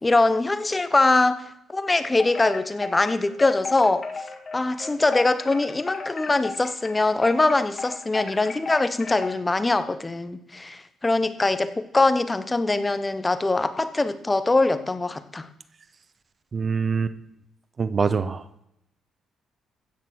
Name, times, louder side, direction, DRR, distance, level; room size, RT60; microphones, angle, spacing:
voice 1, 0.0-1.4 1.7-4.1 4.5-15.5, left 2 dB, 20° left, 12 dB, 1.0 m, -22 dB
Wind chime, 2.1-9.5, left 4 dB, 45° left, 1.9 m, -35 dB
voice 2, 16.5-17.1 17.8-18.6, right 5 dB, 40° right, 13 dB, 0.9 m, -25 dB
15.5 x 6.8 x 6.4 m, 0.81 s
cardioid pair, 80°, 0 cm